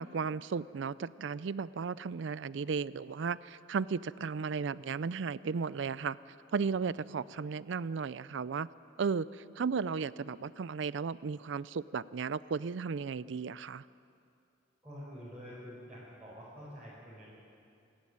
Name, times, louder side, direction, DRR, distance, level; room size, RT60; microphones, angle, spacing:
voice 1, 0.0-6.2 6.5-8.7 9.0-13.8, right 5 dB, 65° right, 18 dB, 0.4 m, -35 dB
voice 2, 14.8-17.3, equal, 5° right, -10 dB, 5.3 m, -47 dB
26.5 x 11.5 x 9.8 m, 2.5 s
head